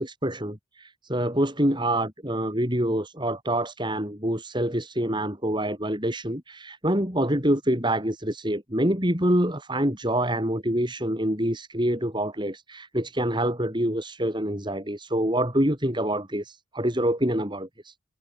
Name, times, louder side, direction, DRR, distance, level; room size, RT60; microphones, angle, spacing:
voice 1, 0.0-17.9, right 1 dB, 25° right, 6.9 m, -26 dB
head